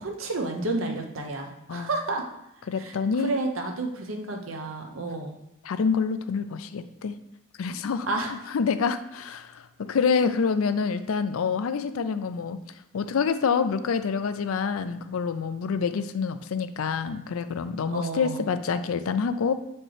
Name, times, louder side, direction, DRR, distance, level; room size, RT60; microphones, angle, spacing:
voice 1, 0.0-2.3 2.8-5.3 8.1-8.3 17.9-18.4, right 2 dB, 75° right, 3 dB, 0.9 m, -31 dB
voice 2, 2.7-3.3 5.6-7.1 7.6-8.1 8.5-12.6 12.9-19.5, left 5 dB, 85° left, 11 dB, 0.4 m, -27 dB
7.2 x 4.4 x 3.3 m, 0.84 s
head